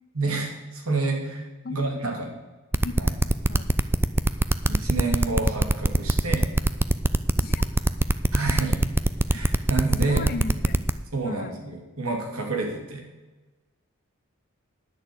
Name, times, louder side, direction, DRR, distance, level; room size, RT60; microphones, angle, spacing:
voice 1, 0.1-1.4 1.7-2.4 3.0-3.1 4.7-6.5 8.3-8.8 9.3-10.3 11.1-13.0, right 3 dB, 90° right, 2 dB, 2.5 m, -28 dB
voice 2, 1.6-2.2 2.7-3.7 7.4-7.6 10.0-10.9 11.2-11.5, left 3 dB, 45° left, 10 dB, 0.8 m, -37 dB
sound 1, 2.7-10.9, right 1 dB, 10° right, 0.3 m, -21 dB
10.5 x 6.7 x 7.8 m, 1.2 s
head